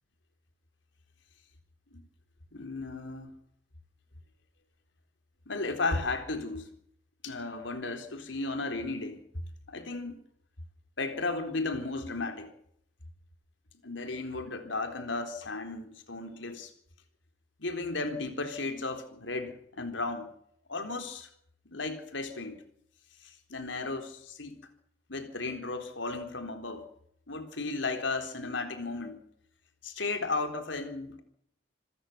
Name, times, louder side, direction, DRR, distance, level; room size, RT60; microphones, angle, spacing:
voice 1, 2.5-3.3 5.5-6.7 7.2-9.2 9.7-10.2 11.0-12.5 13.8-16.7 17.6-20.3 20.7-21.3 21.7-22.6 23.2-24.6 25.1-26.9 27.3-29.2 29.8-31.2, left 3 dB, 75° left, 7 dB, 4.1 m, -34 dB
27.0 x 14.5 x 7.0 m, 0.69 s
head